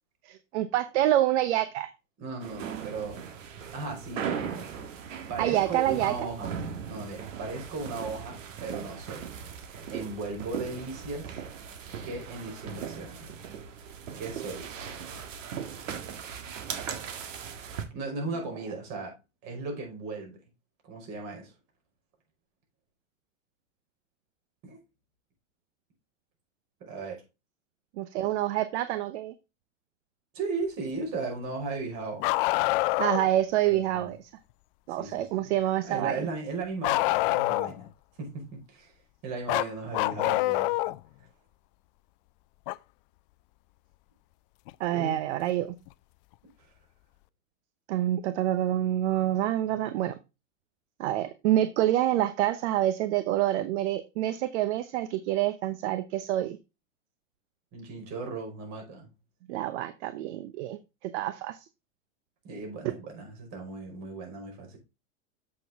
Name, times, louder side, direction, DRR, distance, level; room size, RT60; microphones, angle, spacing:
voice 1, 0.2-1.9 5.4-6.1 28.0-29.3 33.0-34.3 34.9-36.3 44.8-45.7 47.9-50.2 51.0-56.6 59.5-61.6, right 13 dB, 60° right, 0.9 m, -27 dB
voice 2, 2.2-3.2 3.7-4.6 5.3-6.5 6.9-9.3 9.9-11.4 12.0-13.3 14.2-14.7 17.9-19.1 19.4-20.4 20.9-21.5 24.6-24.8 26.8-27.2 30.3-32.3 33.6-34.1 34.9-35.5 35.9-37.9 38.2-38.9 39.2-40.8 44.9-45.1 57.7-59.1 62.4-64.8, right 3 dB, 45° right, 5.1 m, -36 dB
sound 1, 2.4-17.8, right 7 dB, 75° right, 1.8 m, -38 dB
Bark, 32.2-33.3 36.8-37.9 39.5-41.0 42.7-42.8 44.7-44.8 45.9-46.0, left 20 dB, 45° left, 0.4 m, -26 dB
7.6 x 6.6 x 3.5 m
hypercardioid pair, 120°, 38 cm